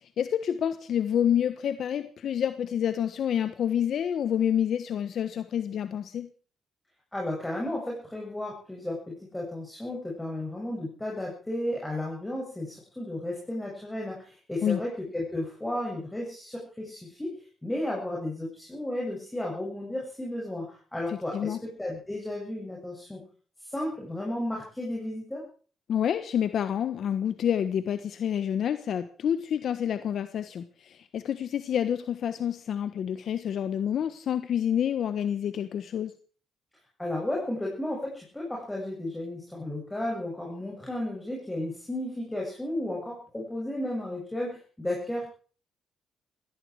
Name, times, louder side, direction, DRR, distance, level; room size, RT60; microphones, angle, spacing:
voice 1, 0.0-6.3 14.6-14.8 21.1-21.6 25.9-36.1, left 9 dB, 65° left, 10 dB, 1.3 m, -28 dB
voice 2, 7.1-17.3 17.6-23.2 23.7-25.4 37.0-45.3, left 1 dB, 10° left, -2 dB, 7.8 m, -33 dB
16.5 x 16.0 x 4.9 m, 0.42 s
cardioid pair, 90°, 0 cm